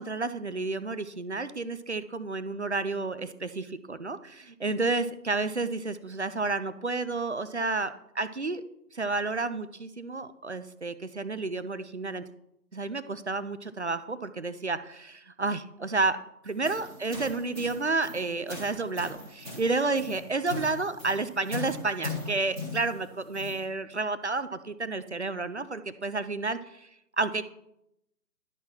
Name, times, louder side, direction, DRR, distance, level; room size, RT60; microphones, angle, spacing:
voice 1, 0.0-8.6 8.9-12.2 12.7-16.2 16.4-26.9 27.2-27.4, right 3 dB, 45° right, 12 dB, 0.5 m, -31 dB
sound 1, 16.4-23.6, left 2 dB, ahead, 2.2 m, -40 dB
11.5 x 5.7 x 4.4 m, 0.80 s
figure-of-eight pair, 160°, 49 cm